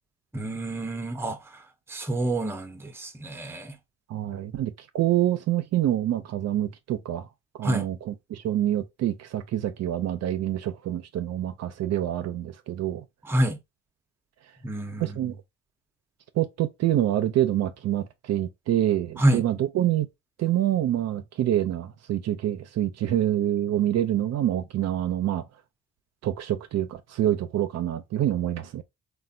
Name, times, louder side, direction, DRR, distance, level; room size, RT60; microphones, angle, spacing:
voice 1, 0.3-1.4 1.9-3.7 7.6-7.9 13.3-13.6 14.6-15.2 19.2-19.4, right 1 dB, 10° right, 0.5 m, -27 dB
voice 2, 4.1-7.3 7.6-13.0 15.0-15.4 16.4-20.1 20.4-25.5 26.2-28.8, right 12 dB, 60° right, 0.4 m, -26 dB
3.2 x 2.2 x 2.6 m
cardioid pair, 90°, 30 cm